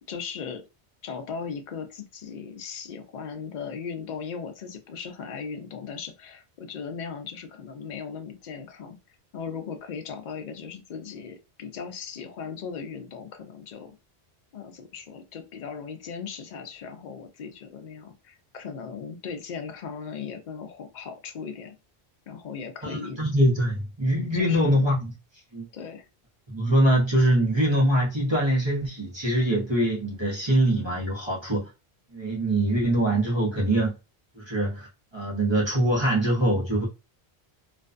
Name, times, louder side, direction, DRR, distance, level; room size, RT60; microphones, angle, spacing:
voice 1, 0.1-0.7 1.0-9.0 9.3-14.0 14.5-21.7 22.3-23.2 24.3-24.9 25.7-26.1, left 6 dB, 55° left, 0.6 m, -38 dB
voice 2, 22.8-25.1 25.5-25.7 26.5-31.7 32.1-33.9 34.3-36.9, right 1 dB, 30° right, 0.8 m, -23 dB
2.4 x 2.2 x 2.5 m
omnidirectional pair, 1.1 m